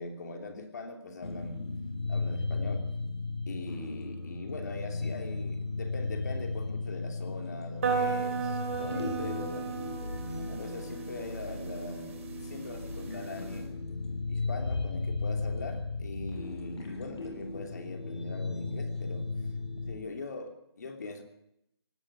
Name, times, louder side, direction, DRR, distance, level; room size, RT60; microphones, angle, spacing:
voice 1, 0.0-1.7 2.1-2.9 3.5-9.7 10.5-13.7 14.3-19.3 19.9-21.2, left 2 dB, 40° left, 5 dB, 2.9 m, -41 dB
sound 1, 1.2-20.0, left 3 dB, 85° left, 6.5 m, -35 dB
sound 2, 7.8-13.6, right 6 dB, 30° right, 3.1 m, -35 dB
18.0 x 15.0 x 9.9 m, 0.80 s
hypercardioid pair, 175°, 14 cm